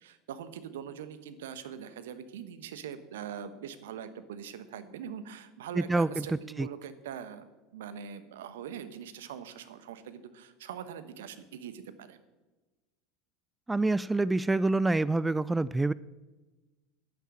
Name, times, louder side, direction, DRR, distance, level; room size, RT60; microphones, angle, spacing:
voice 1, 0.0-12.2, right 8 dB, 70° right, 11 dB, 1.1 m, -42 dB
voice 2, 5.8-6.1 6.6-6.7 13.7-15.9, right 2 dB, 10° right, 19 dB, 0.3 m, -26 dB
10.5 x 9.1 x 7.5 m, 1.2 s
hypercardioid pair, 80°, 0 cm